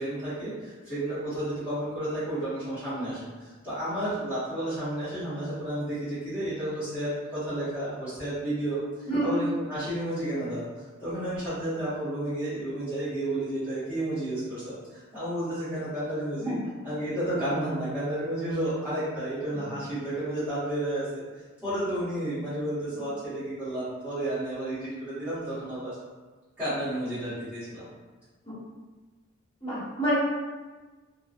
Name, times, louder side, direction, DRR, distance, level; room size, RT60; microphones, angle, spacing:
voice 1, 0.0-10.6 11.0-16.5 16.8-21.2 21.6-25.9 26.6-27.8, right 1 dB, 10° right, -18 dB, 1.2 m, -31 dB
voice 2, 9.1-9.4 16.4-16.7 23.0-23.1 28.4-28.5 29.6-30.2, right 1 dB, 25° left, -11 dB, 1.1 m, -28 dB
2.8 x 2.3 x 2.4 m, 1.3 s
head